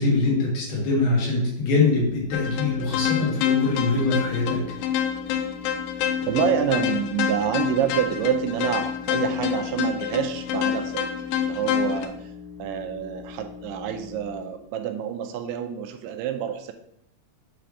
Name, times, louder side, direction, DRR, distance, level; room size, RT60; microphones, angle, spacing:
voice 1, 0.0-4.6, left 3 dB, 70° left, -3 dB, 3.5 m, -23 dB
sound 1, 1.9-3.1 3.6-14.4, left 6 dB, 10° right, 1.2 m, -42 dB
sound 2, 2.3-12.1, left 9 dB, 85° left, 2.1 m, -27 dB
voice 2, 6.2-11.1 11.4-12.3 12.6-16.7, right 10 dB, 85° right, 7 dB, 2.5 m, -27 dB
7.9 x 3.4 x 4.8 m, 0.72 s
omnidirectional pair, 4.7 m